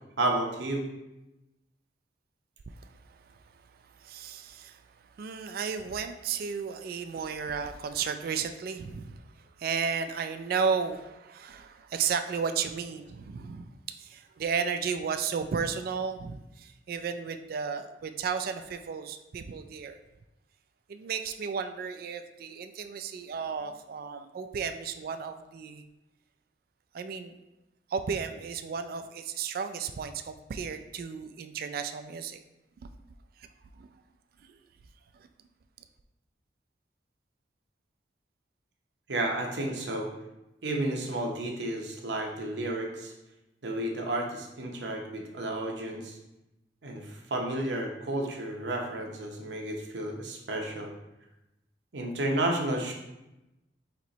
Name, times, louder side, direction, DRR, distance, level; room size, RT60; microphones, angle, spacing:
voice 1, 0.2-0.9 39.1-40.1 40.6-43.1 43.6-46.2 46.8-50.9 51.9-52.9, right 1 dB, 75° right, 1 dB, 0.8 m, -32 dB
voice 2, 2.7-13.7 14.0-20.0 20.9-25.8 26.9-27.4 27.9-32.4 32.8-32.9 33.4-33.5 33.8-33.9 34.4-34.6 35.1-35.3, right 6 dB, 55° right, 8 dB, 0.3 m, -34 dB
4.4 x 3.0 x 3.9 m, 0.94 s
head